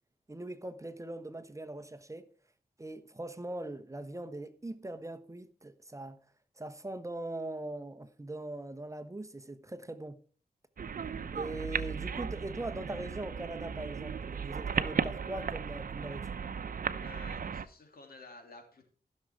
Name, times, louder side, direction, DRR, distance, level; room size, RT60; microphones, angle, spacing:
voice 1, 0.3-2.3 2.8-6.2 6.6-10.2 11.3-16.4, right 1 dB, 20° right, 1.2 m, -41 dB
sound 1, 10.8-17.7, right 6 dB, 65° right, 0.8 m, -36 dB
voice 2, 17.0-18.8, left 3 dB, 75° left, 3.1 m, -52 dB
14.5 x 6.6 x 4.7 m
cardioid pair, 70°, 15 cm